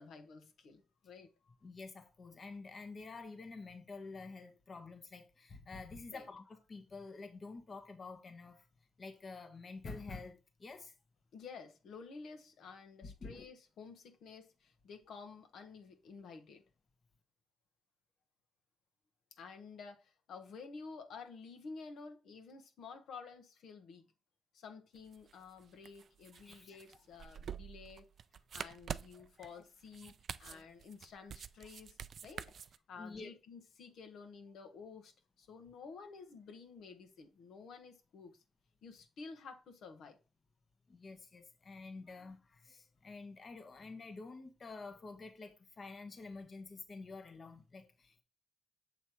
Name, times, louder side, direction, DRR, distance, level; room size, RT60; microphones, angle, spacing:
voice 1, 0.0-1.5 6.1-6.3 11.3-16.6 19.3-24.0 24.5-28.0 28.5-30.1 30.4-32.5 32.9-38.4 38.8-40.2, left 5 dB, 75° left, 1.1 m, -52 dB
voice 2, 1.6-8.7 9.0-10.9 13.0-13.5 26.3-26.8 29.2-29.6 30.0-30.1 30.5-30.6 33.0-33.3 40.9-48.2, left 3 dB, 35° left, 1.0 m, -49 dB
sound 1, 25.0-32.8, right 7 dB, 55° right, 0.3 m, -47 dB
7.0 x 3.1 x 4.4 m
cardioid pair, 115°, 0 cm